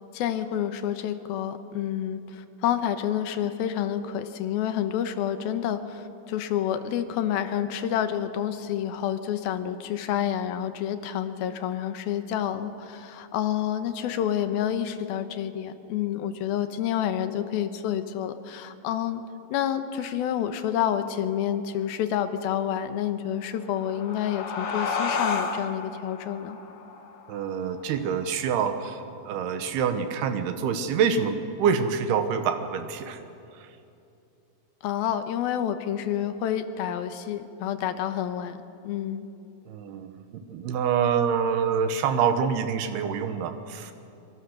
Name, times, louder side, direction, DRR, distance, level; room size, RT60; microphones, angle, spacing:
voice 1, 0.1-19.2 19.5-26.6 34.8-38.6 38.8-39.3, left 10 dB, 80° left, 9 dB, 2.8 m, -29 dB
sound 1, 23.6-28.7, left 4 dB, 55° left, 2.2 m, -32 dB
voice 2, 27.3-33.2 33.5-33.7 39.7-43.9, right 7 dB, 90° right, 8 dB, 3.3 m, -26 dB
25.0 x 23.5 x 6.6 m, 2.7 s
omnidirectional pair, 4.4 m